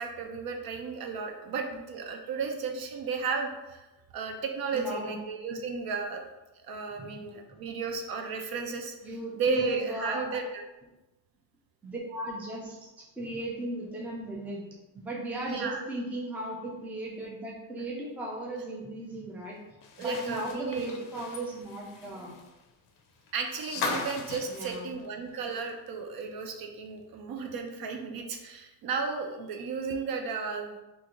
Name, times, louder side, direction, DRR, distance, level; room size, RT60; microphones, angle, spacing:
voice 1, 0.0-3.9 4.1-6.2 6.6-9.0 9.3-10.4 15.4-15.8 20.0-20.9 23.3-30.8, right 4 dB, 55° right, 3 dB, 0.5 m, -33 dB
voice 2, 4.7-5.2 6.9-7.4 9.0-10.4 11.8-14.7 14.9-19.6 20.0-22.3 23.8-24.1 24.5-25.0, right 1 dB, 5° right, -2 dB, 0.4 m, -37 dB
sound 1, 19.8-25.9 26.2-26.3 27.7-27.8, left 4 dB, 50° left, 0.5 m, -39 dB
3.9 x 2.5 x 2.9 m, 1.0 s
cardioid pair, 150°, 43 cm